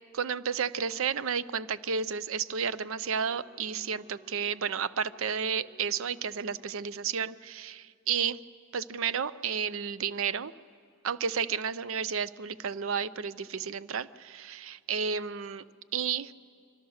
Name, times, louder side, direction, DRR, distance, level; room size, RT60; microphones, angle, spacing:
voice 1, 0.1-8.4 8.7-10.5 11.0-15.6 15.9-16.3, right 6 dB, 65° right, 16 dB, 0.5 m, -32 dB
Wind instrument woodwind instrument, 3.0-7.4, right 2 dB, 25° right, 2.2 m, -59 dB
26.0 x 24.5 x 6.4 m, 2.2 s
head